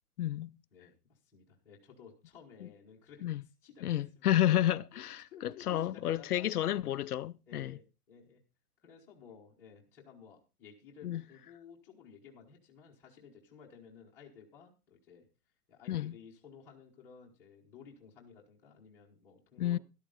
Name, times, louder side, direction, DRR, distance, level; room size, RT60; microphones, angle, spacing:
voice 1, 0.2-0.5 3.2-3.4 3.8-7.7 11.0-11.2 15.9-16.1 19.6-19.8, left 12 dB, 70° left, 0.6 m, -31 dB
voice 2, 0.7-3.3 3.6-4.3 4.9-6.5 7.5-8.4 8.8-15.2 15.7-19.8, left 6 dB, 5° left, 1.0 m, -55 dB
13.0 x 12.0 x 3.8 m
hypercardioid pair, 170°, 46 cm